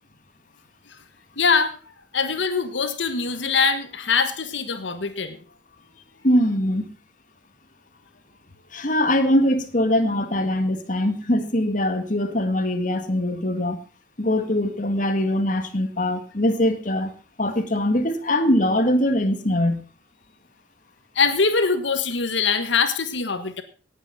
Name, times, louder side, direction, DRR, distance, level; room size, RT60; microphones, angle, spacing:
voice 1, 1.4-5.4 21.1-23.6, left 5 dB, 85° left, 1.4 m, -23 dB
voice 2, 6.2-6.9 8.7-13.8 14.2-17.1 17.4-19.8, left 1 dB, 45° left, 1.8 m, -22 dB
18.0 x 8.3 x 5.7 m
head